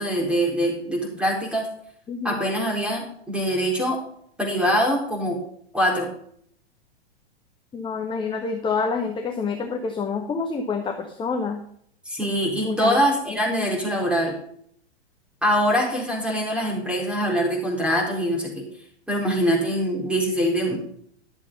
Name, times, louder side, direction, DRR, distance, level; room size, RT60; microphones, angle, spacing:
voice 1, 0.0-1.7 2.2-4.0 4.4-5.4 5.7-6.1 12.1-14.3 15.4-18.6 19.1-20.8, equal, 5° right, -1 dB, 4.1 m, -23 dB
voice 2, 2.1-2.4 7.7-11.6 12.6-12.9, left 5 dB, 15° left, 4 dB, 1.1 m, -27 dB
12.0 x 7.3 x 5.4 m, 0.65 s
hypercardioid pair, 115°, 32 cm